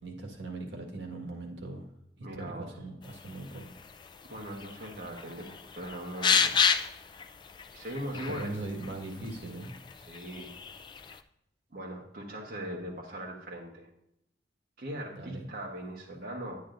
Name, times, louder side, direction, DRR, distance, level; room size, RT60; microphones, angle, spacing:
voice 1, 0.0-1.9 2.2-3.6 8.2-9.7 15.1-15.5, right 2 dB, 80° right, 2 dB, 1.6 m, -40 dB
voice 2, 2.2-2.7 4.3-6.5 7.0-7.3 7.7-8.6 10.1-10.5 11.1-11.2 11.7-13.9 14.8-16.6, right 1 dB, 55° right, -2 dB, 1.2 m, -40 dB
sound 1, 3.0-11.2, left 6 dB, 25° left, 0.3 m, -33 dB
10.0 x 9.6 x 2.6 m, 0.79 s
head